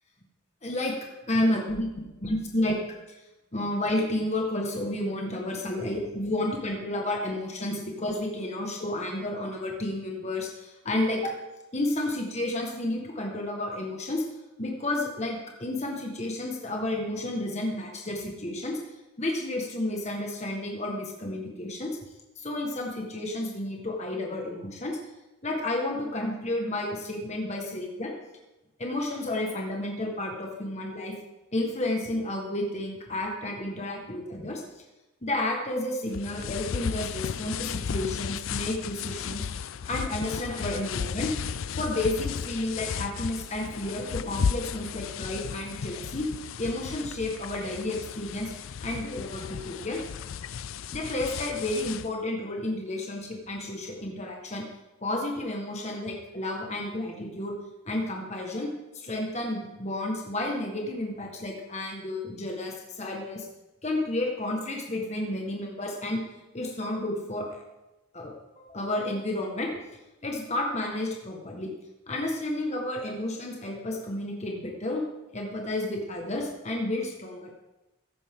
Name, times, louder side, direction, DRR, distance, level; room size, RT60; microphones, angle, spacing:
voice 1, 0.6-1.0 1.3-1.9 2.2-2.8 3.5-11.3 11.7-14.2 14.6-22.0 22.4-25.0 25.4-28.1 28.8-31.1 31.5-34.6 35.2-39.4 39.9-41.3 41.8-46.3 46.6-48.5 48.8-50.0 50.9-54.6 55.0-57.5 57.8-63.5 63.8-66.2 66.5-67.6 68.1-69.7 70.2-71.7 72.1-75.0 75.3-77.5, left 1 dB, 30° left, 0 dB, 1.6 m, -31 dB
sound 1, 36.1-52.1, left 6 dB, 70° left, 0.4 m, -34 dB
14.5 x 11.0 x 3.8 m, 1.0 s
head